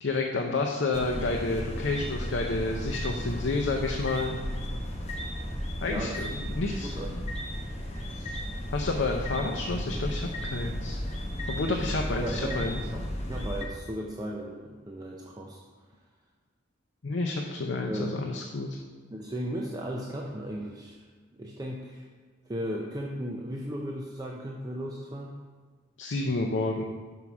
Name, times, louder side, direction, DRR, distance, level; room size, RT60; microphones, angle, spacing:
voice 1, 0.0-4.3 5.8-7.2 8.1-8.4 8.7-11.0 11.5-12.8 17.0-18.8 26.0-26.8, left 3 dB, 65° left, 2 dB, 0.6 m, -30 dB
sound 1, 0.9-13.7, equal, 35° left, 0.8 m, -34 dB
voice 2, 5.9-6.2 6.6-7.1 11.8-13.0 13.3-15.6 17.9-18.1 19.1-21.0 21.4-22.1 22.5-25.3, right 1 dB, 20° right, -2 dB, 0.5 m, -36 dB
5.6 x 4.6 x 6.1 m, 1.5 s
head